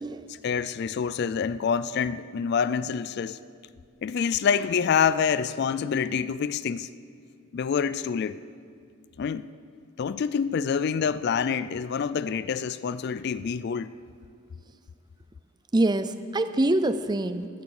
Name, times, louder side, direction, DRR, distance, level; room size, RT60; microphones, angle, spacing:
voice 1, 0.3-3.4 4.0-6.9 7.5-8.4 9.2-9.5 10.0-13.9, left 6 dB, 50° left, 0.3 m, -27 dB
voice 2, 15.7-17.5, right 1 dB, 20° right, 0.5 m, -25 dB
15.0 x 13.5 x 4.8 m
head